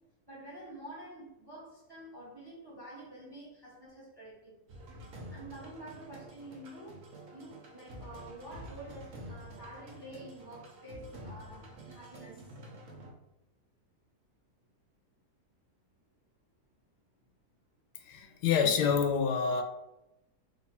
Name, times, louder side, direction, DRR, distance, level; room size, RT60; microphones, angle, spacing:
voice 1, 0.3-4.5 5.3-7.0 7.3-12.4, right 1 dB, 20° right, -4 dB, 0.8 m, -48 dB
sound 1, 4.7-13.1, right 1 dB, 60° right, 1.2 m, -48 dB
voice 2, 18.0-19.6, left 6 dB, 85° left, 6 dB, 1.2 m, -27 dB
3.3 x 2.7 x 4.3 m, 0.92 s
omnidirectional pair, 1.7 m